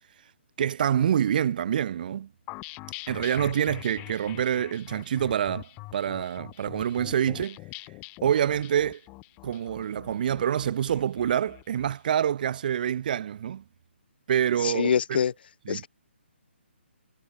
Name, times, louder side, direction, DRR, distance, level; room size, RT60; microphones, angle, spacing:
voice 1, 0.6-2.3 3.1-7.6 8.2-9.0 9.4-13.6 14.3-15.2 15.7-15.8, right 9 dB, 45° right, 2.1 m, -26 dB
sound 1, 2.5-11.9, left 26 dB, 20° left, 4.5 m, -43 dB
voice 2, 14.6-15.3 15.7-15.9, left 7 dB, 55° left, 1.4 m, -25 dB
hypercardioid pair, 150°, 6 cm